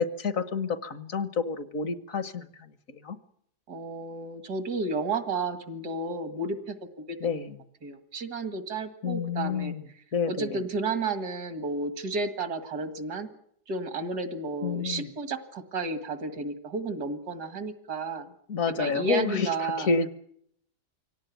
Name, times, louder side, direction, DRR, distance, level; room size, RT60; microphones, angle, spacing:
voice 1, 0.0-2.5 2.9-3.2 7.2-7.6 9.0-9.8 10.1-10.6 14.6-15.1 18.5-20.1, left 5 dB, 60° left, 13 dB, 1.5 m, -29 dB
voice 2, 3.7-7.4 7.8-13.3 13.7-18.3 18.8-19.9, right 3 dB, 80° right, 9 dB, 2.4 m, -32 dB
24.0 x 17.5 x 9.3 m, 0.71 s
omnidirectional pair, 1.7 m